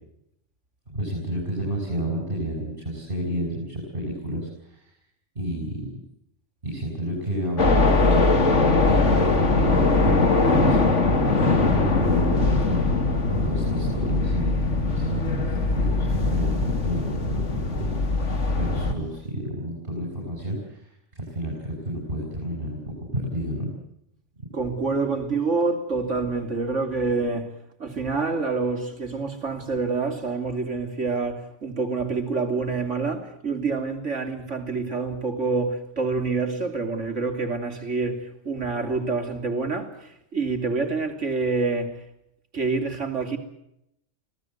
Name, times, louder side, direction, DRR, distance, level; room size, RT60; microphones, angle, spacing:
voice 1, 0.9-4.8 5.4-5.9 6.6-10.8 11.4-12.8 13.4-14.6 14.9-15.3 15.7-17.4 17.7-17.8 18.6-20.8 21.2-22.8 23.1-23.7, equal, 45° right, 7.1 m, -30 dB
sound 1, 7.6-18.9, left 3 dB, 85° left, 2.7 m, -21 dB
voice 2, 24.5-27.5 27.8-42.0 42.5-43.4, right 4 dB, 80° right, 3.4 m, -27 dB
25.5 x 18.0 x 8.0 m
omnidirectional pair, 1.2 m